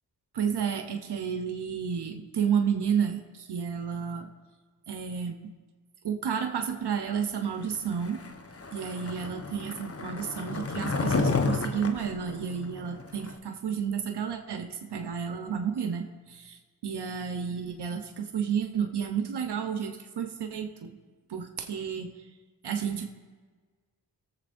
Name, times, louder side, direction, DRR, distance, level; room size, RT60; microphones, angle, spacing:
voice 1, 0.3-4.3 4.9-5.4 6.0-8.2 8.7-16.5 16.8-21.0 21.3-22.1 22.6-23.1, right 7 dB, 70° right, 5 dB, 0.9 m, -31 dB
Skateboard, 7.9-13.3, left 3 dB, 35° left, 1.0 m, -31 dB
20.5 x 7.5 x 2.6 m, 1.4 s
cardioid pair, 45°, 42 cm